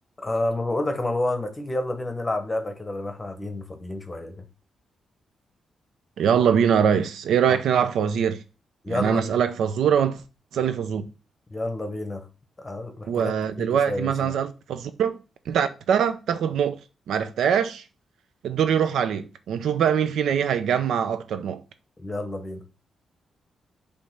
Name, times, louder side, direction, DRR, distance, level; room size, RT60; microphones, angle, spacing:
voice 1, 0.2-4.5 7.5-7.6 8.8-9.3 11.5-12.2 12.6-14.3 22.0-22.6, left 2 dB, 15° left, 0.8 m, -29 dB
voice 2, 6.2-8.4 8.9-10.2 10.5-11.0 13.1-15.2 15.5-16.8 17.1-17.8 18.4-21.6, right 8 dB, 85° right, 0.7 m, -23 dB
5.2 x 3.4 x 5.7 m
wide cardioid pair, 180°, 0 cm